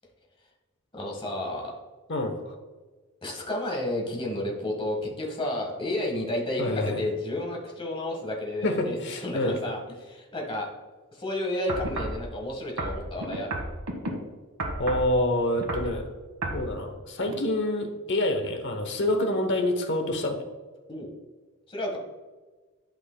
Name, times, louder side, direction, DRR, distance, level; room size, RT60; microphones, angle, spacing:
voice 1, 0.9-1.7 3.2-9.0 9.2-10.7 11.1-13.6 20.9-21.1 21.7-22.0, left 1 dB, 25° left, -1 dB, 1.5 m, -31 dB
voice 2, 2.1-2.6 6.6-7.0 8.6-9.6 14.8-16.1 16.5-20.4, left 1 dB, 55° left, 6 dB, 0.9 m, -27 dB
sound 1, 11.7-12.2 12.8-14.1 14.6-15.1 15.5-15.9 16.4-16.6 17.3-17.4, right 2 dB, 90° right, 1.3 m, -31 dB
11.5 x 5.2 x 2.2 m, 1.3 s
head